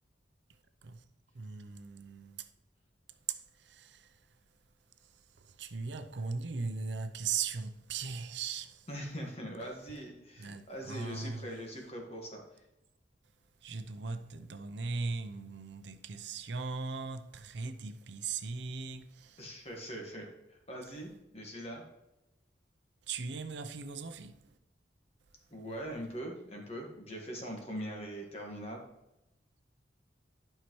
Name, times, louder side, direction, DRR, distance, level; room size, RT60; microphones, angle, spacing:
voice 1, 1.3-2.5 3.3-4.2 5.0-5.1 5.4-8.9 10.4-11.5 13.6-19.5 23.1-24.4, right 5 dB, 70° right, 0.6 m, -39 dB
voice 2, 8.9-12.4 19.4-21.8 25.5-28.8, equal, 35° left, 1.5 m, -42 dB
11.5 x 5.6 x 3.1 m
head